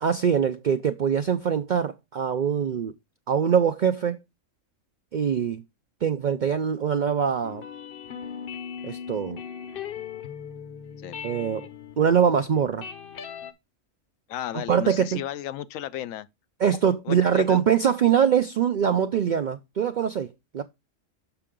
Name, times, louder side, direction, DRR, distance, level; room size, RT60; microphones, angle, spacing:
voice 1, 0.0-2.9 3.3-4.2 5.1-5.6 6.0-7.6 8.8-9.4 11.2-11.7 12.0-12.8 14.7-15.2 16.6-20.6, right 7 dB, 70° right, 0.4 m, -23 dB
sound 1, 7.4-13.5, left 8 dB, 50° left, 0.8 m, -39 dB
voice 2, 14.3-16.3 17.1-17.6, left 11 dB, 80° left, 1.0 m, -34 dB
6.8 x 5.6 x 3.6 m
omnidirectional pair, 1.4 m